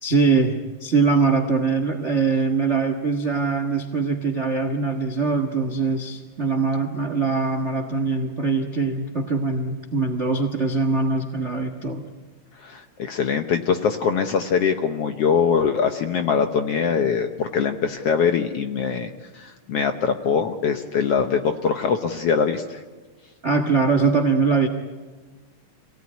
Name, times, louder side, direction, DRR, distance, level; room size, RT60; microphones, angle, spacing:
voice 1, 0.0-12.0 23.4-24.7, right 4 dB, 65° right, 7 dB, 0.7 m, -22 dB
voice 2, 12.6-22.8, left 6 dB, 65° left, 7 dB, 1.5 m, -23 dB
26.5 x 18.0 x 9.7 m, 1.3 s
omnidirectional pair, 3.8 m